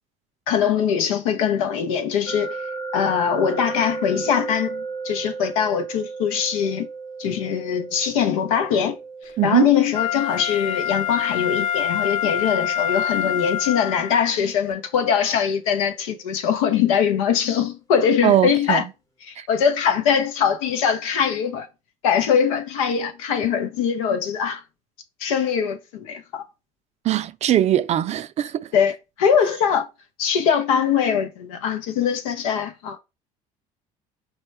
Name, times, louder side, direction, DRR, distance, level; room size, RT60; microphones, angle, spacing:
voice 1, 0.5-2.6 2.9-6.9 7.2-9.0 9.4-18.8 19.2-21.7 22.0-24.6 25.2-26.4 28.7-29.9 30.2-33.0, left 7 dB, 90° left, 0.8 m, -22 dB
sound 1, 2.3-15.2, right 4 dB, 20° left, 0.9 m, -36 dB
voice 2, 9.4-9.7 18.2-18.8 19.4-19.5 27.0-28.7, right 12 dB, 40° right, 0.4 m, -20 dB
Wind instrument woodwind instrument, 9.9-14.2 14.7-14.8, left 10 dB, 55° left, 0.4 m, -25 dB
4.4 x 2.1 x 4.4 m
supercardioid pair, 80°, 17 cm